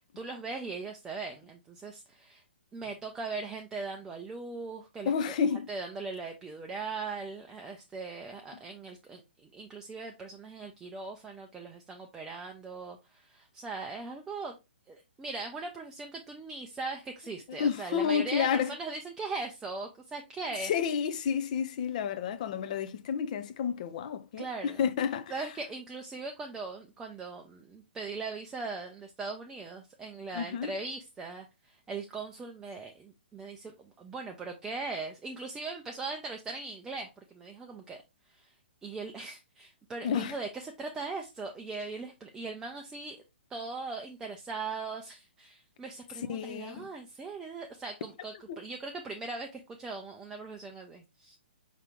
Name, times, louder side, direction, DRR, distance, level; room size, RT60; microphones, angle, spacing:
voice 1, 0.2-2.4 2.7-5.4 5.7-14.5 14.9-20.7 24.4-24.9 25.3-38.0 38.3-38.6 38.8-43.2 43.5-51.4, right 3 dB, 10° right, 0.4 m, -40 dB
voice 2, 5.1-5.7 17.6-18.7 20.6-25.3 30.3-30.7 40.0-40.4 46.3-46.8 48.5-48.6, left 7 dB, 40° left, 0.5 m, -30 dB
4.9 x 2.8 x 3.5 m
figure-of-eight pair, 125°, 6 cm